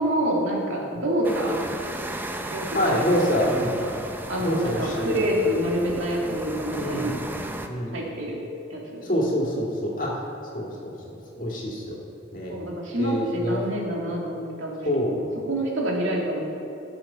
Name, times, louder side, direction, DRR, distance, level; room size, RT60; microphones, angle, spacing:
voice 1, 0.0-1.6 2.5-3.9 4.3-7.2 7.9-8.4 8.7-9.1 12.5-16.4, equal, 80° right, -2 dB, 2.1 m, -27 dB
sound 1, 1.2-7.7, right 1 dB, 10° right, 0.5 m, -34 dB
voice 2, 2.7-3.8 4.4-5.2 6.8-7.2 7.7-8.0 9.0-10.2 10.5-12.0 12.3-12.6 13.0-13.6 14.8-15.2, equal, 40° left, -3 dB, 2.0 m, -26 dB
14.0 x 6.9 x 5.6 m, 2.8 s
head